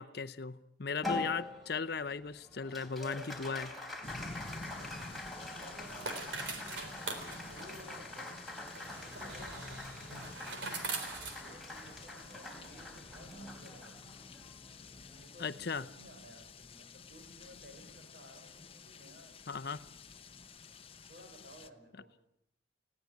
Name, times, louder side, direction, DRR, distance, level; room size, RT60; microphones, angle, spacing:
voice 1, 0.0-3.7 15.4-15.8 19.5-19.8, left 5 dB, 55° left, 0.7 m, -37 dB
Applause, 1.0-15.7, left 2 dB, ahead, 3.6 m, -44 dB
sound 1, 4.0-21.7, left 4 dB, 30° left, 0.9 m, -51 dB
voice 2, 4.4-5.3 5.6-7.2 7.5-8.5 9.0-10.7 11.2-14.0 15.0-19.7 21.1-22.1, equal, 50° right, 5.8 m, -56 dB
sound 2, 4.5-12.2, right 3 dB, 70° right, 3.5 m, -44 dB
20.0 x 16.5 x 9.6 m
head